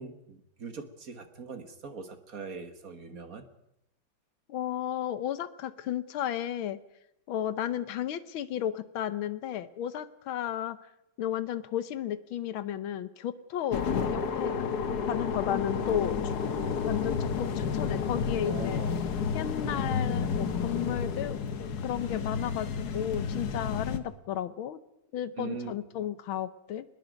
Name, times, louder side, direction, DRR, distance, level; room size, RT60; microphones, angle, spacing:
voice 1, 0.0-3.4 18.4-18.9 25.4-25.7, right 4 dB, 45° right, 9 dB, 1.7 m, -41 dB
voice 2, 4.5-6.8 7.3-10.8 11.2-14.5 15.1-16.2 16.8-18.8 19.3-21.4 21.8-24.8 25.1-26.8, left 10 dB, 80° left, 14 dB, 1.7 m, -33 dB
sound 1, 13.7-24.0, left 6 dB, 55° left, 1.6 m, -31 dB
24.0 x 20.5 x 5.2 m, 0.86 s
omnidirectional pair, 2.2 m